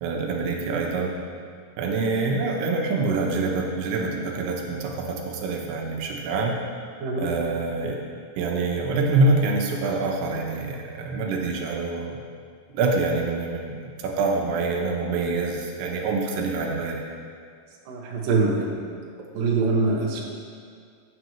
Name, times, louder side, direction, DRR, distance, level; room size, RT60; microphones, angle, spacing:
voice 1, 0.0-1.1 1.8-6.6 7.2-8.0 8.4-12.2 12.7-17.0, right 3 dB, 85° right, 0 dB, 3.0 m, -25 dB
voice 2, 17.9-18.8 19.3-20.2, right 3 dB, 70° right, -2 dB, 2.6 m, -23 dB
14.5 x 8.2 x 3.1 m, 2.2 s
omnidirectional pair, 4.6 m